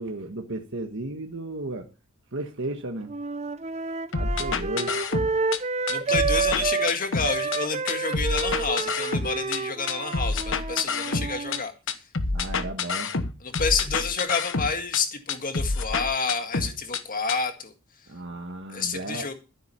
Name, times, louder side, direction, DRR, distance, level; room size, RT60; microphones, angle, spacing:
voice 1, 0.0-1.9 2.3-3.1 4.2-5.1 12.3-13.1 18.1-19.3, right 2 dB, 60° right, 3 dB, 1.4 m, -34 dB
sound 1, 3.1-6.9 7.2-11.6, right 4 dB, 30° right, 0.6 m, -29 dB
sound 2, 4.1-5.6 5.9-7.6 7.9-9.6 9.9-11.6 11.9-15.0 15.3-17.0 17.3-17.4, left 4 dB, 60° left, 1.1 m, -28 dB
voice 2, 5.9-12.0 13.4-17.7 18.7-19.3, left 5 dB, 40° left, 7 dB, 1.8 m, -29 dB
13.0 x 7.8 x 5.6 m, 0.32 s
head